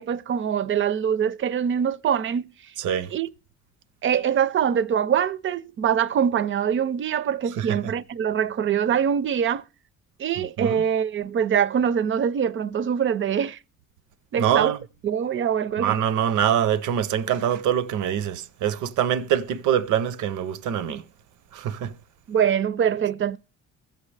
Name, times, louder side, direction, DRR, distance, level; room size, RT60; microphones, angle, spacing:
voice 1, 0.0-2.5 3.1-3.3 4.0-9.6 10.2-13.6 14.3-14.8 15.0-16.0 22.3-23.4, right 8 dB, 40° right, 0.4 m, -23 dB
voice 2, 2.8-3.1 7.6-7.9 10.4-10.8 14.4-14.8 15.8-21.0 21.5-21.9, right 9 dB, 80° right, 0.6 m, -24 dB
21.5 x 7.4 x 3.2 m
cardioid pair, 90°, 30 cm